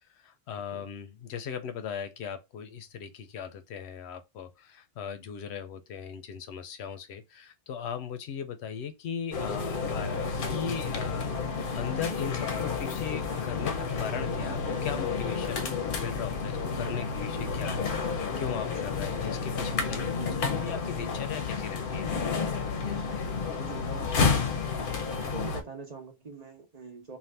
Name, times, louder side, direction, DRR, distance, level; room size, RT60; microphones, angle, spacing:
voice 1, 0.1-10.1 10.4-22.1, left 7 dB, 90° left, 0.9 m, -38 dB
sound 1, 9.3-25.6, left 5 dB, 60° left, 0.7 m, -31 dB
voice 2, 23.5-23.9 25.3-27.2, right 5 dB, 45° right, 0.8 m, -43 dB
2.6 x 2.4 x 3.2 m
omnidirectional pair, 1.1 m